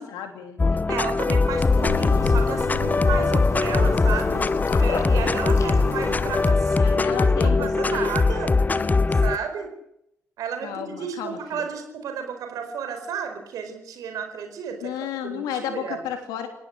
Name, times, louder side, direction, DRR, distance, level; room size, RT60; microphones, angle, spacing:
voice 1, 0.0-0.9 6.2-6.4 6.8-8.1 8.8-8.9 10.6-11.6 14.7-16.5, left 9 dB, 65° left, 6 dB, 3.5 m, -33 dB
sound 1, 0.6-9.4, left 3 dB, 25° left, 0.8 m, -21 dB
voice 2, 0.9-4.4 4.8-8.5 9.1-9.7 10.4-14.9 15.2-15.4 15.8-16.0, right 6 dB, 60° right, 6 dB, 4.7 m, -32 dB
sound 2, 1.4-6.5, left 6 dB, 50° left, 3.1 m, -31 dB
30.0 x 17.5 x 6.6 m, 0.76 s
figure-of-eight pair, 40°, 7 cm